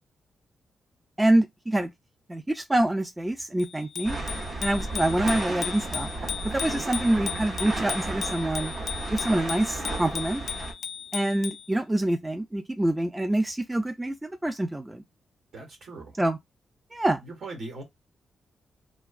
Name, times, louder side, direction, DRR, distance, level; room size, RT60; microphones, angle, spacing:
voice 1, 1.2-1.9 2.3-4.2 4.6-6.1 6.5-8.7 9.1-10.4 11.1-15.0 16.2-16.4 16.9-17.2, right 1 dB, 15° right, 0.3 m, -26 dB
Bicycle bell, 3.6-11.7, left 8 dB, 65° left, 0.3 m, -36 dB
sound 1, 4.0-10.7, right 2 dB, 50° right, 0.8 m, -33 dB
voice 2, 15.5-16.2 17.2-17.8, right 2 dB, 70° right, 1.3 m, -40 dB
3.0 x 2.2 x 2.4 m
cardioid pair, 80°, 0 cm